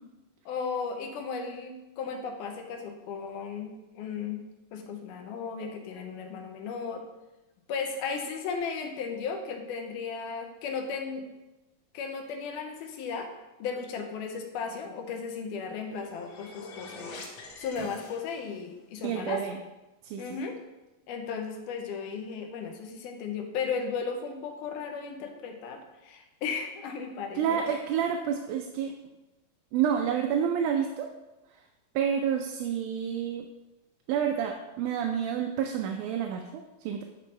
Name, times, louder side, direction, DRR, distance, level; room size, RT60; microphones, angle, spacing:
voice 1, 0.5-4.4 4.7-7.0 7.7-11.3 11.9-13.3 13.6-17.2 17.6-19.5 20.2-20.6 21.1-27.6, left 5 dB, 85° left, 4 dB, 2.3 m, -35 dB
sound 1, 15.7-18.7, left 3 dB, 65° left, 1.9 m, -45 dB
voice 2, 19.0-19.5 20.0-20.2 27.4-28.9 29.7-31.1 32.0-33.5 34.1-37.0, right 8 dB, 85° right, 3 dB, 2.0 m, -29 dB
9.6 x 4.2 x 3.2 m, 1.0 s
omnidirectional pair, 3.6 m